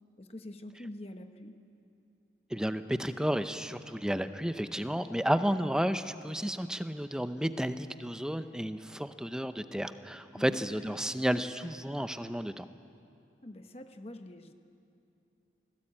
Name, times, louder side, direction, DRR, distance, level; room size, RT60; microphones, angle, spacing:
voice 1, 0.2-1.6 10.3-10.6 13.4-14.5, left 1 dB, 35° left, 7 dB, 1.0 m, -45 dB
voice 2, 2.5-12.7, equal, 5° right, 10 dB, 0.6 m, -32 dB
25.0 x 17.5 x 8.8 m, 2.6 s
head